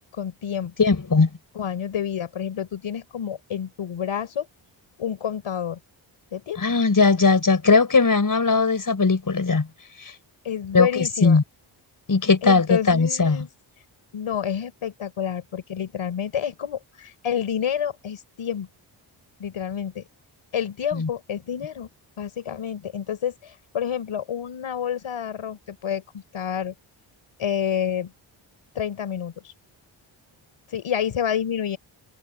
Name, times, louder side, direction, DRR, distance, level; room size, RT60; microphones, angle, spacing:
voice 1, 0.2-0.7 1.6-4.5 5.0-5.8 6.3-6.6 10.4-11.4 12.4-13.5 14.1-18.7 19.4-20.0 20.5-21.9 22.2-26.7 27.4-28.1 28.8-29.5 30.7-31.8, left 8 dB, 75° left, 5.2 m, -29 dB
voice 2, 0.8-1.3 6.6-9.7 10.0-10.1 10.7-11.4 12.1-13.5 20.9-21.1, left 4 dB, 40° left, 5.9 m, -19 dB
supercardioid pair, 50°, 49 cm